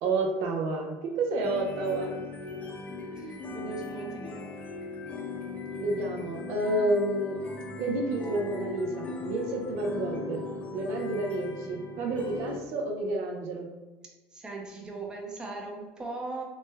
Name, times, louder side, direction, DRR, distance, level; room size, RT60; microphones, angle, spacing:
voice 1, 0.0-2.1 3.1-3.3 5.8-7.4 7.8-10.4 10.7-13.7, right 2 dB, 70° right, 1 dB, 0.5 m, -30 dB
sound 1, 1.4-12.6, left 4 dB, 30° left, 0.4 m, -39 dB
voice 2, 3.2-4.5 14.3-16.4, right 3 dB, 15° right, -1 dB, 0.6 m, -39 dB
3.2 x 2.2 x 3.2 m, 1.2 s
cardioid pair, 130°, 5 cm